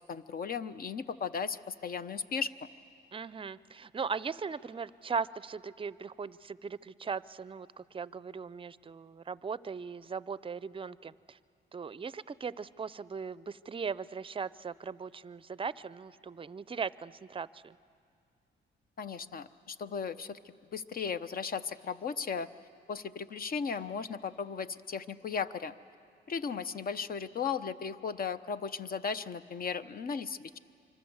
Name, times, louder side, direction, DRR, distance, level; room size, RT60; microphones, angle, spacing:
voice 1, 0.1-2.5 19.0-20.4 20.7-22.5 22.9-25.7 26.3-30.6, left 6 dB, 45° left, 13 dB, 0.9 m, -36 dB
voice 2, 3.1-11.4 11.7-17.8, right 5 dB, 25° right, 18 dB, 0.6 m, -38 dB
25.5 x 24.5 x 8.0 m, 2.3 s
cardioid pair, 90°, 20 cm